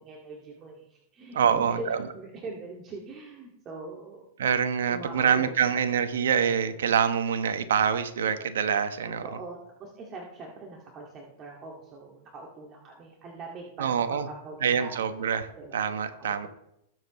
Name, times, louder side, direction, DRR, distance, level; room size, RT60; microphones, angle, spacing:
voice 1, 0.0-4.3 4.9-5.5 9.0-14.9 15.2-15.9 16.2-16.5, right 3 dB, 35° right, -1 dB, 2.1 m, -42 dB
voice 2, 1.3-2.0 4.4-9.4 13.8-14.3 14.6-15.5 15.7-16.5, right 7 dB, 80° right, 9 dB, 1.2 m, -25 dB
20.5 x 7.6 x 3.2 m, 0.80 s
hypercardioid pair, 110°, 0 cm